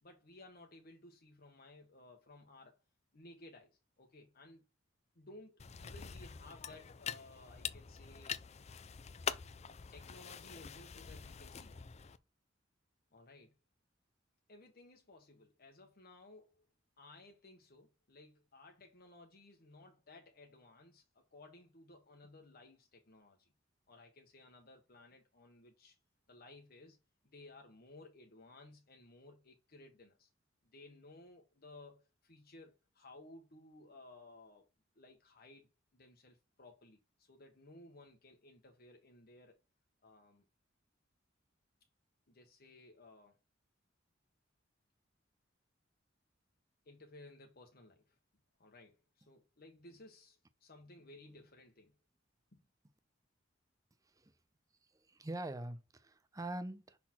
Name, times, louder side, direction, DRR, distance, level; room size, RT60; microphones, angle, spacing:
voice 1, 0.0-2.8 3.1-4.6 5.1-8.4 9.9-11.8 13.1-13.6 14.5-16.7 17.0-23.5 23.9-26.0 26.3-27.0 27.2-30.3 30.6-34.7 35.0-39.6 40.0-40.4 42.3-43.4 46.9-48.2 48.6-51.9 52.5-52.6, left 2 dB, 50° left, 1.1 m, -58 dB
sound 1, 5.6-12.2, left 7 dB, 35° left, 0.4 m, -45 dB
voice 2, 55.1-57.0, right 2 dB, 20° right, 0.6 m, -43 dB
5.9 x 4.2 x 4.3 m
head